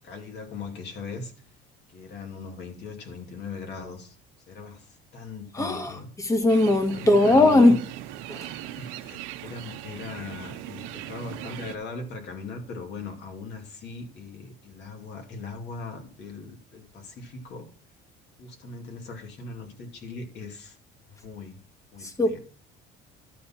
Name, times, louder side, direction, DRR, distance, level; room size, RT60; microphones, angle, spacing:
voice 1, 0.0-1.3 1.9-4.2 4.5-6.1 6.9-7.8 8.8-17.7 18.4-20.8 21.1-21.6 21.9-22.4, left 4 dB, 60° left, 3 dB, 2.4 m, -39 dB
voice 2, 5.5-7.7 8.3-8.5 22.0-22.4, left 2 dB, 15° left, 7 dB, 1.5 m, -20 dB
sound 1, 6.5-11.8, right 12 dB, 85° right, 0.9 m, -39 dB
12.0 x 4.4 x 5.7 m, 0.41 s
cardioid pair, 110°, 20 cm